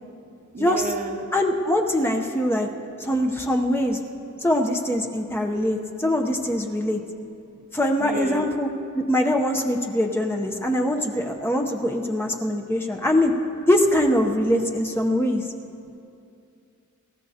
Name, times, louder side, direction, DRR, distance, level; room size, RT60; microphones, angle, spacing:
voice 1, 0.5-1.3 8.0-8.5, right 1 dB, 40° right, 6 dB, 0.8 m, -31 dB
voice 2, 1.3-2.7 3.0-4.0 4.4-7.0 7.7-8.7 8.9-13.3 13.7-15.4, left 1 dB, 10° left, 2 dB, 0.7 m, -23 dB
26.0 x 14.5 x 2.8 m, 2.6 s
head